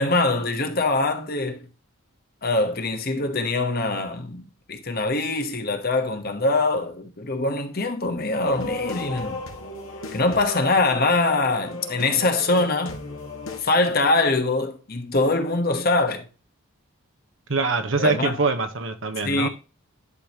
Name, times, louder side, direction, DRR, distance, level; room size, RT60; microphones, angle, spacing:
voice 1, 0.0-1.6 2.4-9.4 10.1-13.0 13.6-16.3 18.0-18.4 19.2-19.5, left 2 dB, 45° left, 1.1 m, -23 dB
sound 1, 8.4-13.6, left 2 dB, 70° left, 1.8 m, -35 dB
voice 2, 17.5-19.5, right 4 dB, 60° right, 1.1 m, -24 dB
11.0 x 5.0 x 2.9 m
head